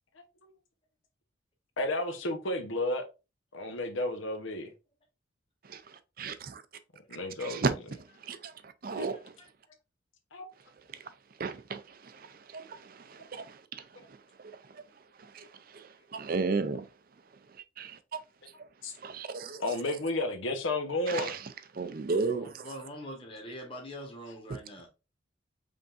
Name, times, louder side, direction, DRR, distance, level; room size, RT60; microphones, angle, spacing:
voice 1, 1.8-3.0 3.5-4.7 7.1-7.6 8.9-9.0 10.3-10.5 13.2-13.3 18.8-18.9 19.6-21.3, left 2 dB, 80° left, 1.0 m, -32 dB
voice 2, 5.6-6.6 7.4-9.3 10.9-11.1 11.4-14.8 15.2-16.9 17.5-18.2 18.6-18.7 18.9-20.0 21.1-22.7, right 4 dB, 45° right, 0.5 m, -36 dB
voice 3, 22.3-24.9, equal, 25° left, 1.3 m, -43 dB
5.2 x 3.6 x 2.6 m
head